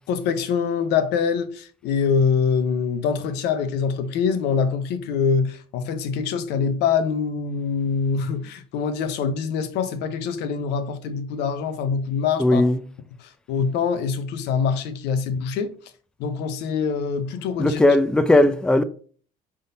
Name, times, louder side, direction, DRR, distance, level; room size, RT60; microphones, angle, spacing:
voice 1, 0.1-12.6 13.2-15.7 16.2-17.8, left 6 dB, 85° left, 0.7 m, -24 dB
voice 2, 12.4-12.8 17.6-18.8, left 1 dB, 5° left, 0.4 m, -17 dB
5.5 x 3.6 x 2.6 m
cardioid pair, 110°, 17 cm